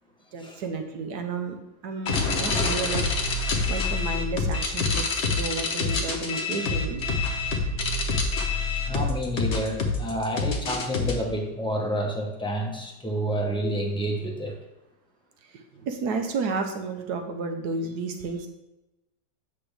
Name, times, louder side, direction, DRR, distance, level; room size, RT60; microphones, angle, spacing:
voice 1, 0.3-3.2 3.7-7.0 15.5-18.5, right 4 dB, 65° right, 6 dB, 1.4 m, -32 dB
sound 1, 2.1-11.1, left 3 dB, 45° left, 1.1 m, -26 dB
voice 2, 8.9-14.6, equal, 5° left, -1 dB, 0.6 m, -29 dB
8.4 x 6.0 x 3.3 m, 0.96 s
omnidirectional pair, 2.0 m